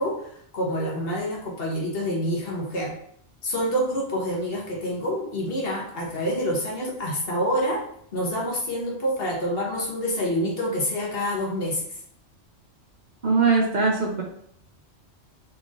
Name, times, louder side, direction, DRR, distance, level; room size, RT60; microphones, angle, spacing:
voice 1, 0.0-2.9 3.4-7.8 8.1-12.0, equal, 60° left, -3 dB, 1.2 m, -27 dB
voice 2, 13.2-14.2, right 4 dB, 50° right, -1 dB, 0.7 m, -21 dB
4.0 x 3.4 x 2.4 m, 0.66 s
omnidirectional pair, 1.2 m